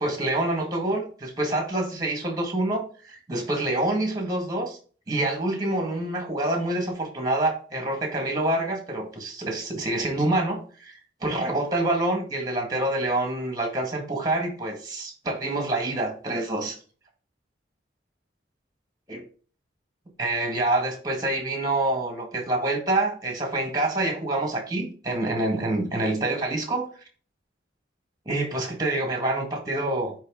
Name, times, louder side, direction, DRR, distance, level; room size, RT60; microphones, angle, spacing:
voice 1, 0.0-4.8 5.1-16.8 19.1-19.2 20.2-26.9 28.3-30.1, right 2 dB, 20° right, 1.8 m, -27 dB
9.1 x 3.4 x 3.7 m
head